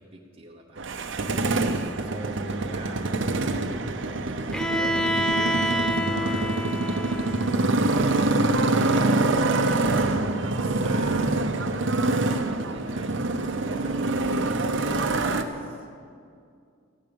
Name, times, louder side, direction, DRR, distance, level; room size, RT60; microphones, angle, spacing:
voice 1, 0.0-1.5 2.0-7.3 8.6-11.6 12.2-14.4 14.9-16.0, right 1 dB, 25° right, -1 dB, 0.9 m, -41 dB
Motorcycle, 0.8-15.4, right 2 dB, 60° right, 0.7 m, -25 dB
Bowed string instrument, 4.5-8.4, equal, 5° left, 0.6 m, -28 dB
14.0 x 10.5 x 7.0 m, 2.3 s
head